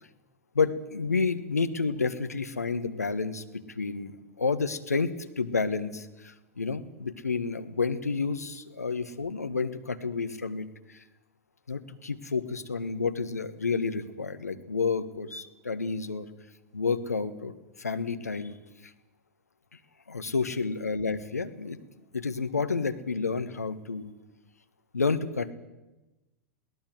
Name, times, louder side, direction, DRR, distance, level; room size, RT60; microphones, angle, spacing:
voice 1, 0.5-11.0 11.7-16.3 16.7-17.5 17.8-18.6 20.1-21.8 22.1-24.1 24.9-25.5, left 4 dB, 80° left, 10 dB, 1.5 m, -30 dB
22.0 x 17.5 x 7.9 m, 1.1 s
figure-of-eight pair, 95°, 8 cm